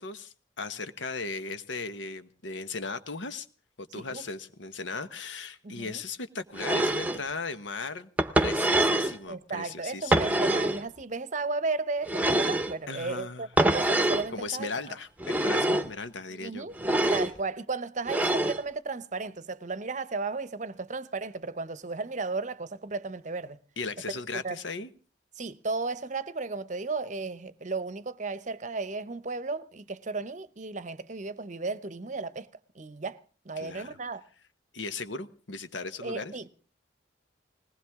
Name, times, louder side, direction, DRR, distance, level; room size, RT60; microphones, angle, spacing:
voice 1, 0.0-3.5 3.8-8.1 8.4-10.4 12.9-13.5 14.3-16.7 17.0-17.1 23.8-24.9 33.6-33.9 34.7-36.3, left 4 dB, 80° left, 1.3 m, -37 dB
voice 2, 5.6-6.0 9.3-14.7 16.3-16.8 17.1-23.6 24.4-24.6 25.4-32.5 32.7-33.2 33.4-34.2 36.0-36.5, right 3 dB, 40° right, 0.8 m, -34 dB
sound 1, 6.6-7.2 8.2-9.2 10.1-10.8 12.1-12.7 13.6-14.3 15.2-15.9 16.8-17.3 18.1-18.6, right 1 dB, 10° right, 0.9 m, -25 dB
20.0 x 19.0 x 3.6 m
head